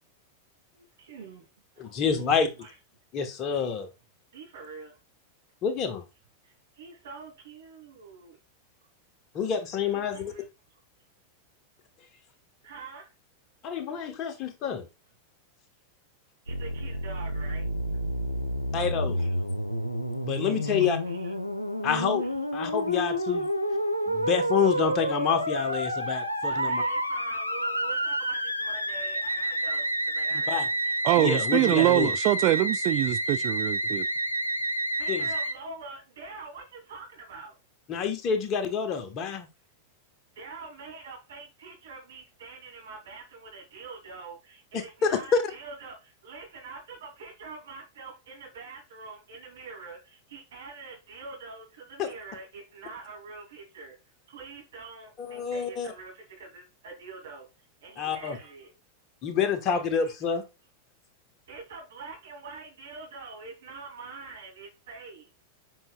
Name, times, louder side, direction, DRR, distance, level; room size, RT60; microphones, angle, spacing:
voice 1, 0.7-1.5 1.7-2.8 4.3-5.0 6.4-8.4 9.8-10.5 12.6-13.1 16.4-17.7 19.2-19.3 20.6-21.3 22.2-22.3 22.9-23.1 26.5-31.0 35.0-37.6 40.3-54.0 54.3-57.5 57.8-58.7 60.0-60.4 61.5-65.3, right 4 dB, 60° right, 3.0 m, -45 dB
voice 2, 1.8-2.5 3.1-3.9 5.6-6.0 9.3-10.3 13.6-14.9 18.7-19.2 20.2-21.0 21.8-22.2 22.5-23.5 24.1-26.8 30.5-30.6 31.2-32.1 35.1-35.3 37.9-39.5 44.7-45.4 52.0-52.1 55.2-55.9 58.0-58.4 59.2-60.4, left 6 dB, 35° left, 1.3 m, -28 dB
Musical instrument, 16.5-35.5, right 1 dB, 90° left, 0.8 m, -29 dB
voice 3, 31.0-34.1, right 18 dB, 40° right, 0.3 m, -24 dB
7.6 x 5.6 x 2.4 m
figure-of-eight pair, 90°, 0 cm